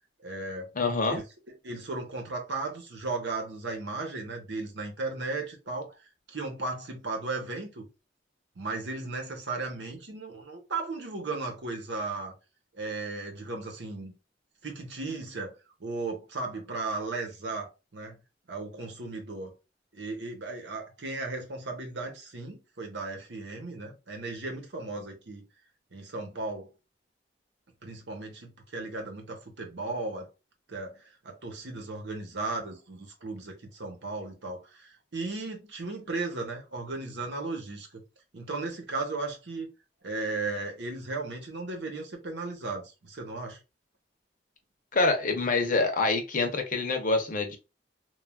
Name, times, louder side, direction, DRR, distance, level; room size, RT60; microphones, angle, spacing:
voice 1, 0.2-0.7 1.1-1.2 1.6-5.9 6.3-7.9 8.6-12.3 12.7-14.1 14.6-15.5 15.8-18.2 18.5-19.5 19.9-25.4 25.9-26.7 27.8-30.3 30.7-38.0 38.3-39.7 40.0-43.6, right 3 dB, 85° right, 0.9 m, -36 dB
voice 2, 0.8-1.2 44.9-47.6, left 3 dB, 50° left, 0.7 m, -26 dB
3.2 x 2.3 x 2.3 m
head